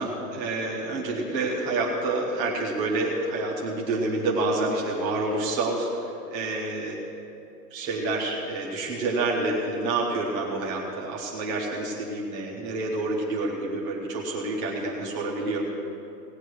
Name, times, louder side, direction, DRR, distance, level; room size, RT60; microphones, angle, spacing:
voice 1, 0.0-7.0 7.7-15.6, right 2 dB, 10° right, -4 dB, 0.5 m, -28 dB
18.0 x 8.1 x 6.1 m, 2.7 s
hypercardioid pair, 170°, 49 cm